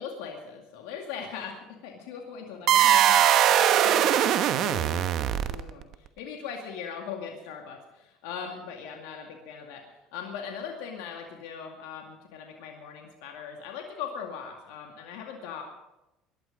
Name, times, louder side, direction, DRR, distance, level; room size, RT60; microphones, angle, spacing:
voice 1, 0.0-1.5 1.8-15.6, left 7 dB, 80° left, 2 dB, 2.2 m, -40 dB
sound 1, 2.7-5.8, right 10 dB, 60° right, 1.1 m, -21 dB
20.5 x 12.0 x 5.3 m, 0.96 s
supercardioid pair, 80°, 0 cm